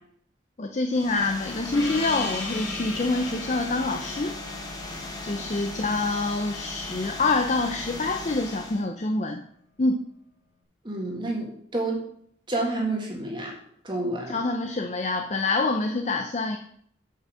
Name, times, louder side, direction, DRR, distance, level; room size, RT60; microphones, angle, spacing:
voice 1, 0.6-4.3 5.2-9.4 9.8-10.0 14.3-16.6, left 3 dB, 35° left, 3 dB, 0.5 m, -26 dB
sound 1, 0.9-8.9, left 2 dB, 20° left, 1.0 m, -38 dB
Gong, 1.7-6.8, left 3 dB, 80° left, 1.9 m, -37 dB
voice 2, 10.8-12.0 12.5-13.5 13.8-14.4, right 2 dB, 25° right, -1 dB, 1.8 m, -29 dB
7.6 x 5.4 x 6.2 m, 0.67 s
head